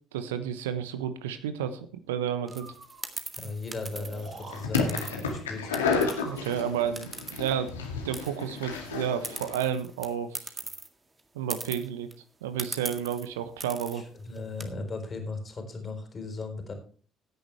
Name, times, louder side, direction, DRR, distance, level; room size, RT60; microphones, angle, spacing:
voice 1, 0.1-2.7 6.3-10.5 11.3-12.1 12.4-14.0, right 9 dB, 70° right, 11 dB, 1.0 m, -31 dB
Breathing, 2.4-3.1 3.9-4.6 5.8-6.6, right 3 dB, 40° right, 6.8 m, -47 dB
sound 1, 2.5-5.3 5.7-7.9 8.1-10.9 11.2-11.3 11.5-12.1 12.6-13.3 13.6-14.0 14.4-14.6, right 3 dB, 20° right, 1.9 m, -40 dB
voice 2, 3.4-5.8 13.9-16.7, left 3 dB, 30° left, 5 dB, 4.0 m, -37 dB
sound 2, 4.5-9.6, left 4 dB, 75° left, 2.2 m, -31 dB
16.0 x 10.0 x 3.3 m, 0.40 s
figure-of-eight pair, 50°, 0 cm